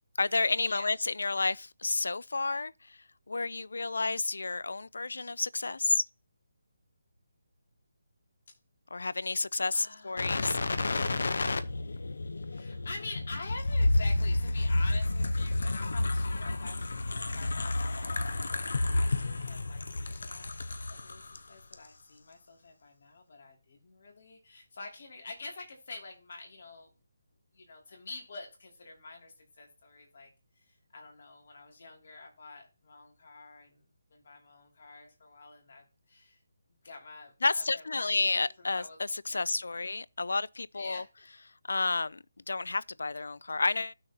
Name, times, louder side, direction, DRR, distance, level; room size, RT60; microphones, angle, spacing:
voice 1, 0.2-3.0 3.3-6.0 8.9-10.6 37.4-41.0 41.7-43.9, left 3 dB, 85° left, 0.3 m, -31 dB
voice 2, 9.7-10.3 12.4-26.9 27.5-30.3 30.6-36.4 36.7-39.0 39.3-39.8 40.7-41.0, left 3 dB, 40° left, 2.6 m, -47 dB
sound 1, 10.2-21.4 21.7-21.9, left 2 dB, 65° left, 0.8 m, -30 dB
14.5 x 6.3 x 2.8 m
hypercardioid pair, 180°, 0 cm